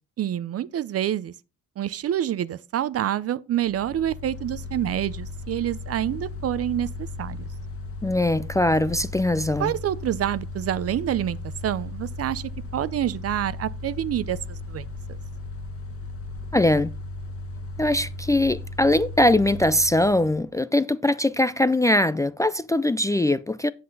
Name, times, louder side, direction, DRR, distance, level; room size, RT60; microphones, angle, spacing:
voice 1, 0.2-1.3 1.8-6.9 7.2-7.5 9.6-11.4 11.6-15.2, right 11 dB, 50° right, 0.6 m, -27 dB
Mechanical fan, 3.6-20.5, left 2 dB, 50° left, 1.5 m, -36 dB
voice 2, 8.0-9.7 16.5-16.9 17.8-23.7, left 1 dB, 10° left, 0.4 m, -21 dB
7.8 x 7.7 x 3.9 m
cardioid pair, 90°, 30 cm